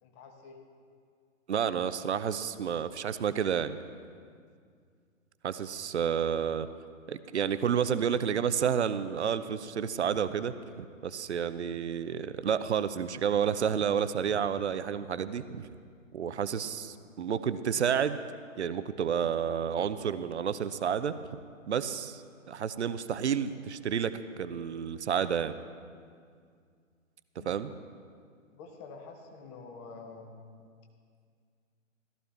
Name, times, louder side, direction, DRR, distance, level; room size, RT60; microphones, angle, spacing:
voice 1, 0.0-0.6 6.1-6.2 27.4-27.6 28.5-30.3, left 4 dB, 20° left, 3 dB, 1.1 m, -48 dB
voice 2, 1.5-3.8 5.4-6.7 7.1-15.7 16.1-18.2 18.6-21.4 21.7-25.5 27.4-27.7, right 8 dB, 60° right, 13 dB, 0.6 m, -30 dB
15.0 x 13.5 x 3.4 m, 2.2 s
figure-of-eight pair, 125°, 39 cm